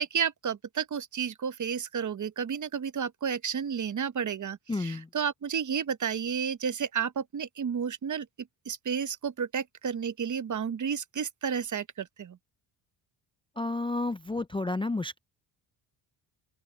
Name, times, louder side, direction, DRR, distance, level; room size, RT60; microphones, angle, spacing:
voice 1, 0.0-8.3 8.7-12.4, right 7 dB, 40° right, 0.9 m, -31 dB
voice 2, 4.7-5.1 13.6-15.2, left 2 dB, 10° left, 0.5 m, -31 dB
open air
cardioid pair, 80°, 48 cm